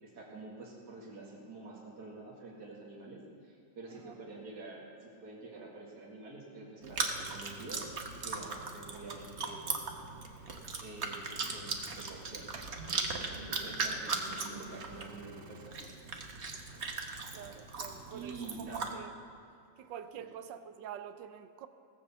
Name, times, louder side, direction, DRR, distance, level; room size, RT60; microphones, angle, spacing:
voice 1, 0.0-7.8 8.2-9.7 10.8-15.7 18.1-18.9 20.2-20.3, right 3 dB, 60° right, -5 dB, 2.5 m, -48 dB
Chewing mastication, 6.8-18.9, right 4 dB, 45° right, 1.3 m, -38 dB
voice 2, 17.3-19.1 19.8-21.7, right 9 dB, 90° right, 11 dB, 1.4 m, -46 dB
18.5 x 7.6 x 7.0 m, 2.6 s
omnidirectional pair, 1.9 m